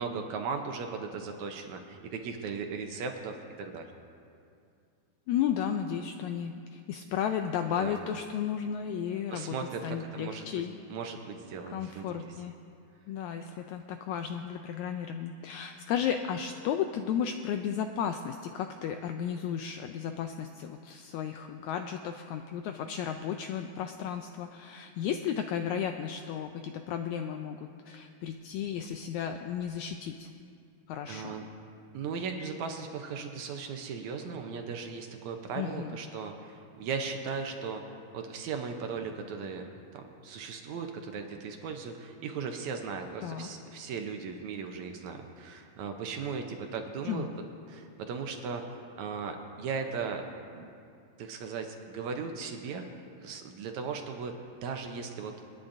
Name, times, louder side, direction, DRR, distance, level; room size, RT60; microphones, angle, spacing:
voice 1, 0.0-3.9 7.8-8.0 9.3-10.6 10.9-12.3 31.1-31.4 31.9-37.8 38.1-47.3 47.7-50.2 50.5-50.7 51.2-54.3 54.6-55.3, right 5 dB, 70° right, 4 dB, 1.9 m, -37 dB
voice 2, 5.3-9.6 9.8-10.8 11.7-12.5 13.1-30.3 30.9-31.3 35.6-36.0 43.2-43.5 47.0-47.3, left 8 dB, 85° left, 6 dB, 1.6 m, -34 dB
29.5 x 10.0 x 2.6 m, 2.4 s
omnidirectional pair, 3.8 m